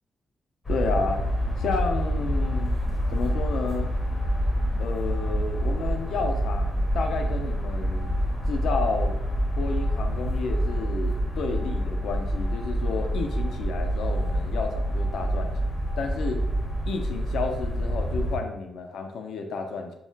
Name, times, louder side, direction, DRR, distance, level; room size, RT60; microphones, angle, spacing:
sound 1, 0.6-18.4, equal, 20° left, 0.6 m, -27 dB
voice 1, 0.7-1.2 1.6-2.7 3.1-3.9 4.8-8.1 8.5-9.2 9.6-15.7 16.0-16.4 16.9-19.9, left 4 dB, 85° left, 4 dB, 0.4 m, -31 dB
sound 2, 1.0-16.9, right 1 dB, 25° right, 0.5 m, -51 dB
2.3 x 2.1 x 3.8 m, 0.84 s
wide cardioid pair, 175°, 0 cm